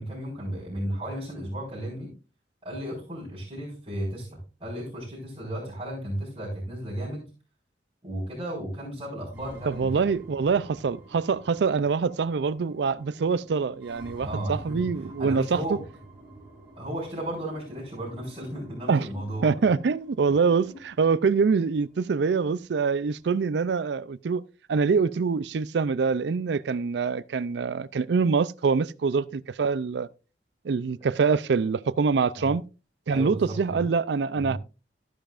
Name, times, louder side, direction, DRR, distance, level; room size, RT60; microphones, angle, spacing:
voice 1, 0.0-2.1 2.6-7.2 8.0-10.1 14.2-15.8 16.8-19.5 32.3-32.5 33.1-33.9 34.3-34.6, right 1 dB, 30° right, 5.0 m, -34 dB
sound 1, 9.3-23.3, equal, 10° right, 4.6 m, -48 dB
voice 2, 9.7-15.6 18.9-19.1 19.4-30.1 30.6-32.6 33.1-34.6, right 5 dB, 70° right, 0.4 m, -25 dB
14.0 x 10.5 x 2.5 m
head